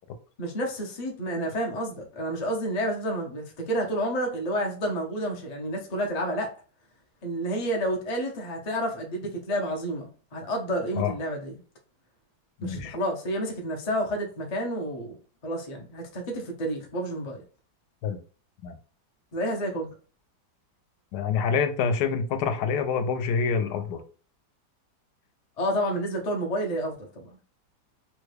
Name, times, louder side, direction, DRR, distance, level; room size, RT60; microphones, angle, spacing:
voice 1, 0.4-6.5 7.2-11.6 12.6-15.1 15.4-17.4 19.3-19.9 25.6-27.3, equal, 50° left, 0.4 m, -30 dB
voice 2, 12.6-13.0 18.0-18.2 18.6-18.7 21.1-24.0, left 6 dB, 80° left, 1.2 m, -26 dB
3.4 x 2.2 x 3.2 m
omnidirectional pair, 1.8 m